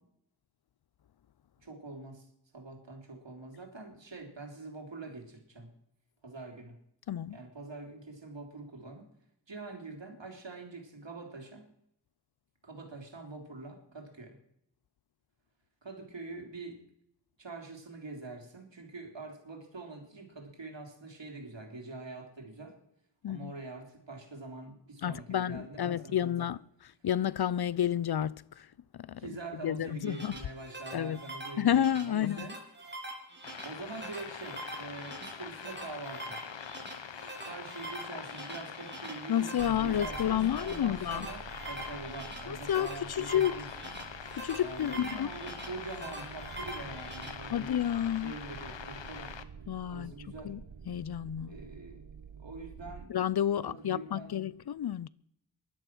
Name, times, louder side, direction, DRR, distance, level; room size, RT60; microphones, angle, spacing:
voice 1, 1.6-5.7 6.2-6.8 7.3-9.1 9.5-11.7 12.6-14.4 15.8-16.8 17.4-22.8 23.3-26.5 29.2-31.8 32.0-32.5 33.6-36.4 37.4-43.9 44.6-47.7 48.2-49.3 49.9-50.5 51.5-52.0 52.4-53.1 53.7-54.3, right 3 dB, 80° right, 3.3 m, -44 dB
voice 2, 7.1-7.4 23.2-23.5 25.0-26.6 27.0-30.4 30.9-31.2 31.6-32.5 39.3-41.3 42.5-43.6 44.3-45.3 47.5-48.3 49.7-50.1 50.4-50.6 50.9-51.5 53.1-55.1, left 10 dB, 60° left, 0.5 m, -30 dB
sound 1, 29.8-47.3, right 2 dB, 25° right, 3.5 m, -45 dB
sound 2, 33.4-49.4, left 7 dB, 85° left, 1.0 m, -44 dB
sound 3, 39.6-53.1, right 6 dB, 55° right, 1.2 m, -49 dB
16.5 x 11.5 x 6.1 m
wide cardioid pair, 80°, 44 cm